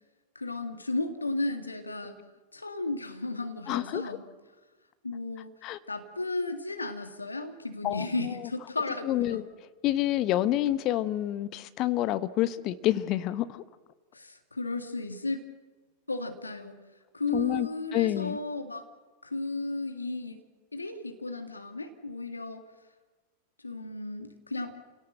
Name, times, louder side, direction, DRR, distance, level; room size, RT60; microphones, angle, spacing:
voice 1, 0.4-2.2 2.5-4.2 5.0-5.5 5.9-9.4 14.1-15.4 16.1-16.8 17.1-18.9 19.2-20.4 20.7-22.6 23.6-24.7, left 2 dB, 80° left, 7 dB, 2.0 m, -34 dB
voice 2, 3.7-4.0 5.6-5.8 7.8-8.4 9.0-9.4 9.8-13.6 17.3-18.4, left 14 dB, 40° left, 13 dB, 1.1 m, -28 dB
29.0 x 18.0 x 7.8 m, 1.3 s
figure-of-eight pair, 90°, 0 cm